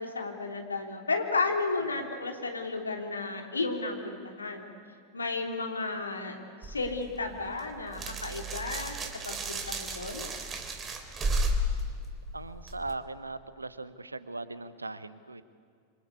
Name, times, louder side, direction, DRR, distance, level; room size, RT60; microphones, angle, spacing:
voice 1, 0.0-4.7 5.1-6.4 6.7-8.9 9.2-10.3, left 3 dB, 75° left, 3 dB, 3.3 m, -33 dB
voice 2, 1.8-2.1 12.3-15.4, right 3 dB, 80° right, 14 dB, 1.2 m, -39 dB
sound 1, 6.6-12.9, right 1 dB, 20° right, 3.2 m, -33 dB
27.5 x 25.5 x 8.5 m, 2.2 s
figure-of-eight pair, 90°, 0 cm